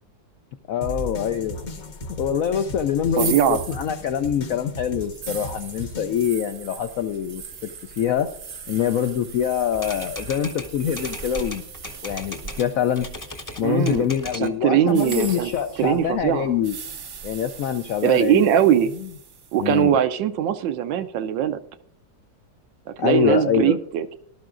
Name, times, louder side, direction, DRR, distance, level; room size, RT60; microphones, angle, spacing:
voice 1, 0.7-1.6 2.1-8.3 8.7-11.6 12.0-13.1 13.6-16.8 17.2-18.4 19.6-20.0 23.0-23.8, left 9 dB, 75° left, 8 dB, 0.7 m, -24 dB
sound 1, 0.8-6.3, left 2 dB, 45° left, 1.1 m, -36 dB
sound 2, 3.1-14.1 14.8-19.7, right 6 dB, 60° right, 0.6 m, -39 dB
voice 2, 3.2-3.6 13.6-14.1 14.3-15.5 15.8-16.5 18.0-18.9 19.5-21.6 23.0-24.1, right 10 dB, 80° right, 11 dB, 1.4 m, -21 dB
Typewriter, 9.7-12.7 13.0-14.6 14.9-15.9, left 2 dB, 20° left, 0.6 m, -38 dB
19.0 x 12.0 x 2.5 m, 0.65 s
omnidirectional pair, 2.0 m